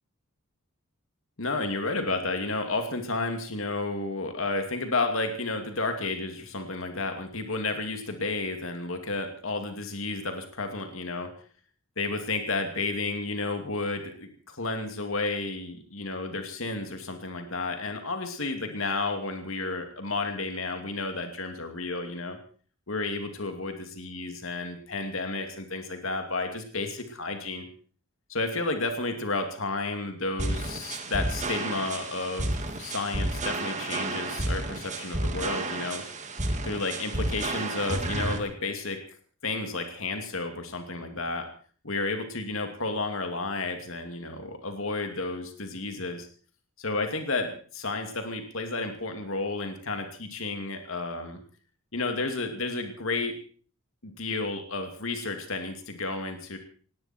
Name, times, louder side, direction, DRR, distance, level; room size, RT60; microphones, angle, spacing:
voice 1, 1.4-11.3 12.0-22.4 22.9-27.7 28.3-32.5 32.8-36.0 36.6-39.0 39.4-41.5 41.8-46.3 46.8-51.4 51.9-53.3 54.0-56.6, left 3 dB, 65° left, 6 dB, 2.6 m, -32 dB
sound 1, 30.4-38.4, right 2 dB, 35° right, 2.2 m, -31 dB
19.0 x 17.0 x 4.5 m, 0.42 s
head